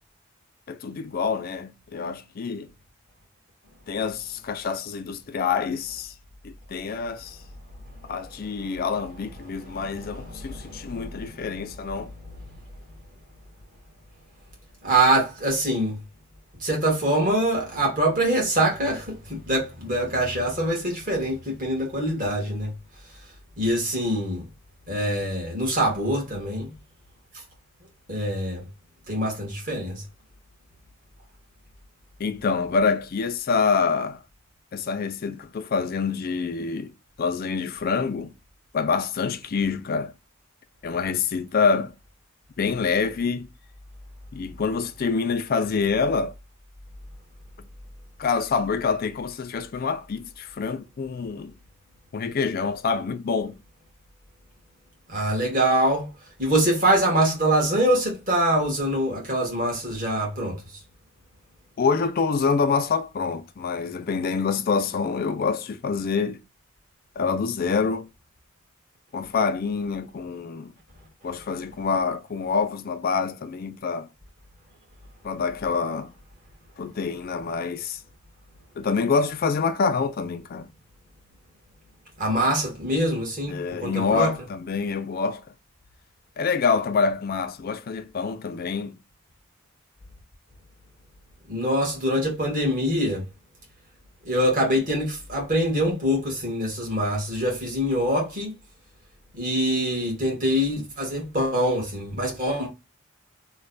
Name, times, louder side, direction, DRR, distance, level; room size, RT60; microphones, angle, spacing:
voice 1, 0.7-2.7 3.9-6.1 6.4-7.4 8.0-12.1 32.2-34.2 34.7-36.9 37.2-38.3 38.7-40.1 40.8-41.9 42.6-43.5 44.3-46.3 48.2-51.5 52.1-53.6 61.8-66.4 67.2-68.1 69.1-70.7 71.2-74.1 75.2-76.1 76.8-78.0 78.8-80.7 83.5-85.4 86.4-89.0, left 5 dB, 40° left, 0.3 m, -26 dB
voice 2, 9.7-11.2 14.8-16.0 16.6-22.7 23.6-24.5 24.9-26.7 28.1-28.6 29.1-30.0 55.1-56.1 56.4-60.6 82.2-84.3 91.5-93.3 94.2-98.5 99.3-102.7, right 1 dB, 35° right, 1.4 m, -24 dB
3.2 x 2.2 x 3.8 m
head